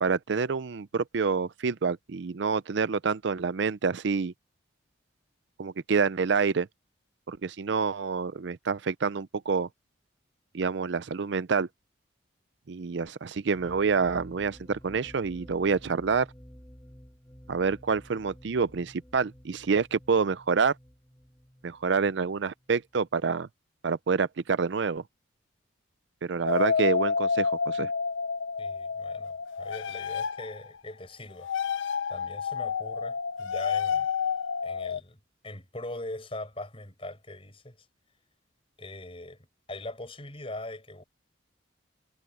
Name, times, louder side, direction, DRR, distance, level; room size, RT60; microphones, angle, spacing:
voice 1, 0.0-4.3 5.6-6.7 7.3-9.7 10.5-11.7 12.7-16.3 17.5-20.7 21.6-23.5 23.8-25.0 26.2-27.9, right 5 dB, 65° right, 0.5 m, -27 dB
sound 1, 13.5-23.2, equal, 10° left, 1.7 m, -52 dB
Jules' Musical Saw, 26.5-30.7 31.4-35.0, left 6 dB, 75° left, 0.5 m, -29 dB
voice 2, 28.6-31.8 32.1-34.1 34.6-35.2 35.4-37.9 38.8-41.0, left 1 dB, 30° left, 5.9 m, -41 dB
head